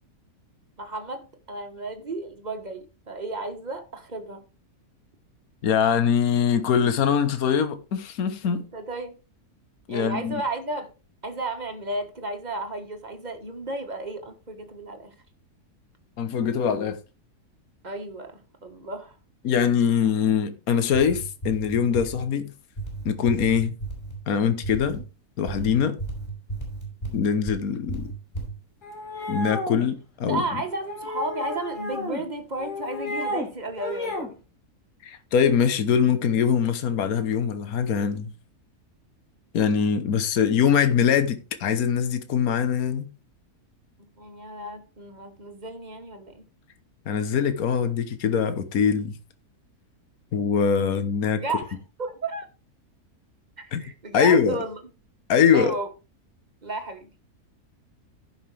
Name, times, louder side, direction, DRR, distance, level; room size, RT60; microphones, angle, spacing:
voice 1, 0.8-4.4 8.4-9.2 9.9-10.9 11.2-15.1 17.8-19.2 30.2-34.4 40.6-41.0 44.2-46.4 51.4-52.5 53.6-54.8 55.5-55.9 56.6-57.1, right 2 dB, 30° right, 1.4 m, -33 dB
voice 2, 5.6-8.6 9.9-10.4 16.2-17.0 19.4-22.5 23.0-23.7 24.3-25.0 25.4-26.0 27.1-28.1 29.3-30.4 35.0-38.3 39.5-43.1 47.1-49.1 50.3-51.4 53.7-53.8 54.1-54.6 55.3-55.7, left 7 dB, 65° left, 1.5 m, -23 dB
sound 1, 20.8-22.2 22.8-24.2 24.6-25.0 25.5-27.6 27.9-28.5, right 2 dB, 35° left, 5.5 m, -34 dB
sound 2, 28.8-29.9 30.9-32.2 32.6-33.5 33.8-34.3, left 1 dB, 90° left, 3.1 m, -32 dB
16.0 x 5.7 x 3.3 m
omnidirectional pair, 1.7 m